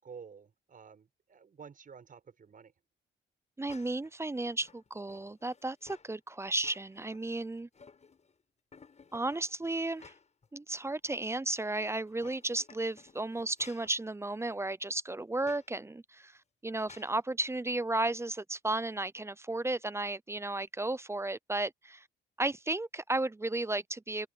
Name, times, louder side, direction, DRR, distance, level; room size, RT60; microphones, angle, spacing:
voice 1, 0.0-2.7, right 6 dB, 45° right, 6.9 m, -51 dB
voice 2, 3.6-7.7 9.1-10.1 10.5-16.3 16.6-22.0 22.4-24.3, right 2 dB, 15° right, 0.6 m, -34 dB
sound 1, 3.7-4.1 4.6-6.1 6.5-7.2 7.6-8.3 8.7-10.5 10.9-11.0 12.0-14.0 15.4-15.7 16.9-17.2, left 5 dB, 35° left, 5.8 m, -56 dB
cardioid pair, 90°, 20 cm